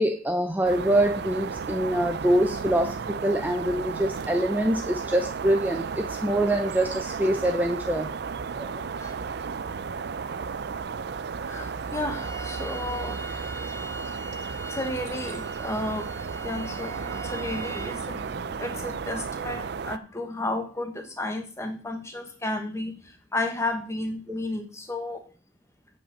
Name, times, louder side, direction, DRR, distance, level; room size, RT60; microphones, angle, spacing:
voice 1, 0.0-8.1 8.6-8.8, right 1 dB, 10° right, 5 dB, 0.6 m, -25 dB
sound 1, 0.6-20.0, right 5 dB, 55° right, 0.4 m, -34 dB
voice 2, 11.4-23.0 23.3-25.2, left 2 dB, 15° left, 6 dB, 1.3 m, -33 dB
8.6 x 5.3 x 6.8 m, 0.41 s
head